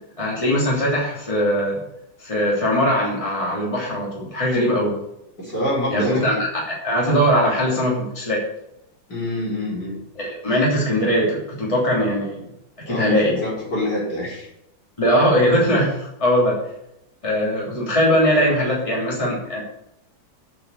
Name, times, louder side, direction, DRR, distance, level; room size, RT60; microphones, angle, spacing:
voice 1, 0.2-1.8 2.2-4.9 5.9-8.4 10.1-12.4 12.9-13.4 15.0-16.6 17.2-19.6, equal, 15° left, -5 dB, 3.1 m, -20 dB
voice 2, 5.4-6.4 9.1-10.0 12.9-14.5, left 1 dB, 60° left, -6 dB, 4.8 m, -26 dB
8.4 x 5.9 x 7.9 m, 0.81 s
omnidirectional pair, 2.1 m